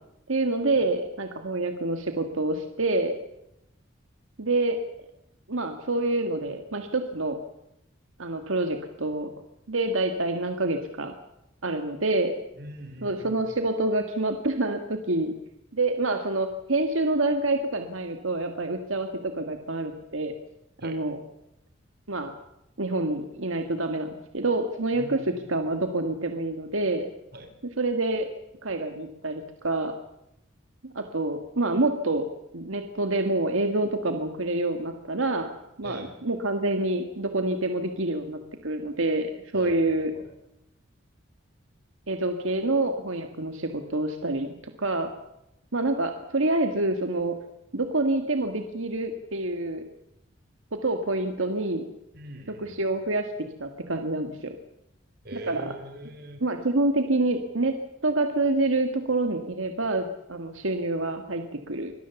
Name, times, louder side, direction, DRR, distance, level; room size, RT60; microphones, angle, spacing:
voice 1, 0.3-3.1 4.4-4.8 5.5-7.4 8.2-9.3 9.7-11.1 11.6-12.3 13.0-15.3 15.7-20.3 20.8-21.2 22.1-22.3 22.8-25.2 25.5-27.1 27.8-28.3 28.6-29.9 30.8-32.2 32.5-35.5 35.8-40.1 42.1-44.5 44.8-45.1 45.7-47.3 47.7-49.8 50.8-51.8 52.6-53.3 53.6-54.6 55.5-55.7 56.4-57.7 58.0-61.9, right 2 dB, 85° right, 6 dB, 1.8 m, -27 dB
voice 2, 12.6-13.4 20.8-21.0 25.0-25.4 27.3-27.5 35.8-36.2 39.5-40.3 52.1-52.9 55.2-56.4, right 1 dB, 50° right, 6 dB, 4.1 m, -42 dB
25.0 x 18.0 x 7.1 m, 0.84 s
head